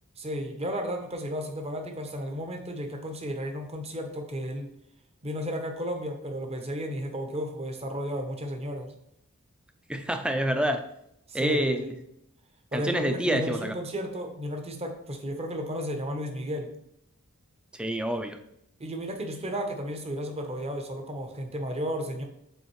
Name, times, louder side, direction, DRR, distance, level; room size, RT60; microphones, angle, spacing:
voice 1, 0.2-4.7 5.2-8.9 11.3-12.0 12.7-16.7 18.8-22.2, equal, 30° right, 4 dB, 0.8 m, -33 dB
voice 2, 9.9-10.8 11.3-11.8 12.7-13.7 17.7-18.4, right 1 dB, 5° right, 6 dB, 0.4 m, -27 dB
8.1 x 4.1 x 3.1 m, 0.77 s
head